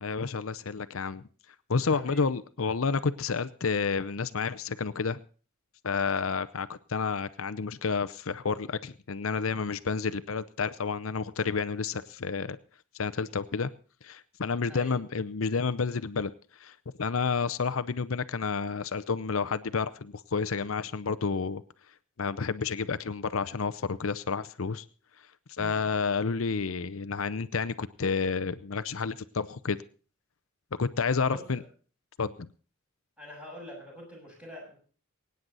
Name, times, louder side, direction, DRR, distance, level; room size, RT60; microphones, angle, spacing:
voice 1, 0.0-1.2 1.7-5.2 5.8-12.6 13.0-13.7 14.0-16.3 16.6-21.6 22.2-24.8 25.6-29.8 30.8-31.6 32.2-32.5, left 5 dB, 75° left, 13 dB, 0.7 m, -30 dB
voice 2, 1.9-2.3 14.7-15.0 25.6-25.9 31.2-31.5 33.2-34.8, equal, 5° right, -2 dB, 7.0 m, -44 dB
23.5 x 9.5 x 4.0 m, 0.40 s
head